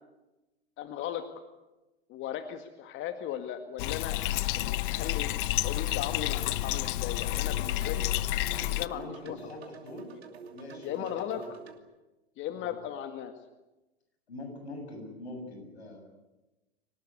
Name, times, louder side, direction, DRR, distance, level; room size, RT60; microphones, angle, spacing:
voice 1, 0.8-1.3 2.1-5.3 5.6-8.0 8.5-9.4 10.8-11.6 12.4-13.3, left 10 dB, 40° left, 8 dB, 2.0 m, -37 dB
Bathtub (filling or washing), 3.8-8.9, left 17 dB, 55° left, 1.0 m, -30 dB
sound 1, 4.1-11.8, right 6 dB, 75° right, 2.9 m, -49 dB
voice 2, 8.9-10.1 10.5-11.6 12.5-12.7 14.3-16.0, left 2 dB, 80° left, 5 dB, 7.5 m, -44 dB
24.5 x 19.0 x 9.7 m, 1.0 s
hypercardioid pair, 95°, 32 cm